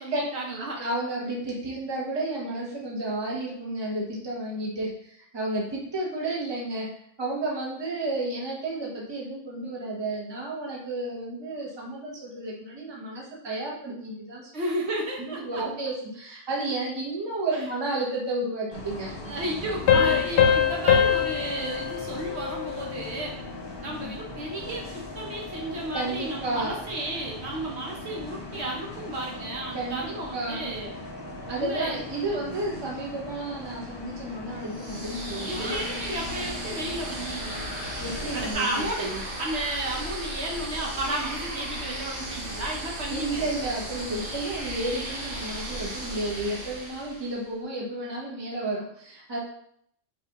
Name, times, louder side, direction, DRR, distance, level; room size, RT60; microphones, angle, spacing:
voice 1, 0.0-0.8 14.5-15.6 19.2-23.3 23.8-30.9 31.5-32.6 35.4-37.7 38.3-39.1 39.4-43.5, right 1 dB, 65° right, -1 dB, 1.0 m, -33 dB
voice 2, 0.8-14.5 15.2-19.2 19.9-20.1 23.8-24.2 25.9-26.9 29.7-30.9 31.5-35.8 38.0-39.3 43.1-49.4, right 2 dB, 25° right, -3 dB, 0.9 m, -32 dB
Bus, 18.7-38.5, left 2 dB, 30° left, 0.5 m, -39 dB
Piano, 19.9-23.2, left 8 dB, 70° left, 0.9 m, -23 dB
sound 1, 34.6-47.4, right 1 dB, 50° right, 1.3 m, -36 dB
5.5 x 2.5 x 2.9 m, 0.69 s
omnidirectional pair, 1.2 m